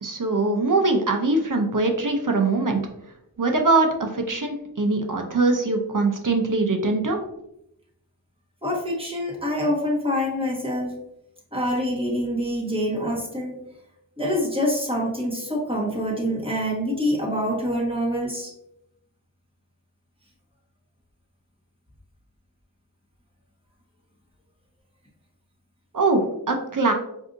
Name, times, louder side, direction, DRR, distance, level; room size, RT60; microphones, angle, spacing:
voice 1, 0.0-2.8 3.4-7.2 25.9-26.9, right 3 dB, 45° right, 3 dB, 0.6 m, -22 dB
voice 2, 8.6-11.0 11.5-13.6 14.2-18.5, equal, 10° right, -5 dB, 1.4 m, -26 dB
4.7 x 2.7 x 2.5 m, 0.82 s
wide cardioid pair, 50°, 44 cm